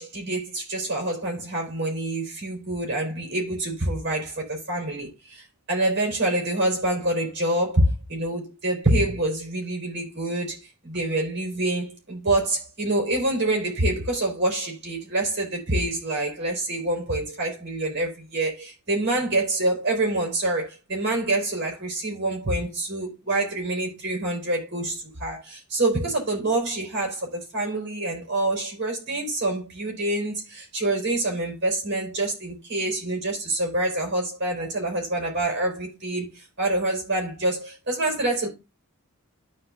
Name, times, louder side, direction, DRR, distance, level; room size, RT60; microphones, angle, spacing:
voice 1, 0.0-10.6 10.8-38.5, right 2 dB, 50° right, 4.3 m, -26 dB
13.5 x 4.7 x 2.5 m
head